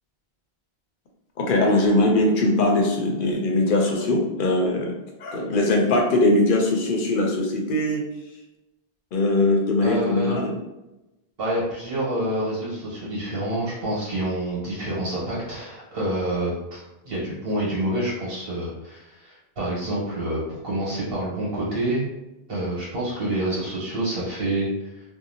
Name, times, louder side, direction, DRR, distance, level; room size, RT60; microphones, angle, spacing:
voice 1, 1.4-4.9 5.2-8.1 9.1-10.5, left 2 dB, 60° left, 1 dB, 0.7 m, -21 dB
voice 2, 9.8-10.4 11.4-22.1 22.5-24.7, right 1 dB, 70° right, -6 dB, 1.3 m, -27 dB
2.7 x 2.1 x 2.6 m, 0.98 s
omnidirectional pair, 1.0 m